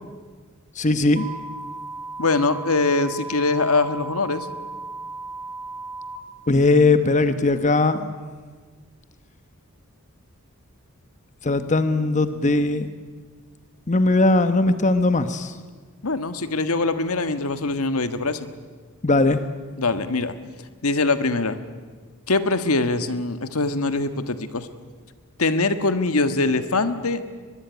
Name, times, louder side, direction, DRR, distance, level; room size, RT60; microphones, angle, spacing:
voice 1, 0.8-1.2 6.5-8.1 11.4-12.9 13.9-15.5 19.0-19.4, left 2 dB, 35° left, 10 dB, 1.0 m, -19 dB
sound 1, 1.2-6.2, right 3 dB, 35° right, 4.9 m, -35 dB
voice 2, 2.2-4.5 16.0-18.5 19.8-20.3 20.8-21.6 22.3-24.7 25.4-27.2, left 3 dB, 80° left, 10 dB, 1.5 m, -23 dB
23.0 x 21.5 x 9.3 m, 1.5 s
head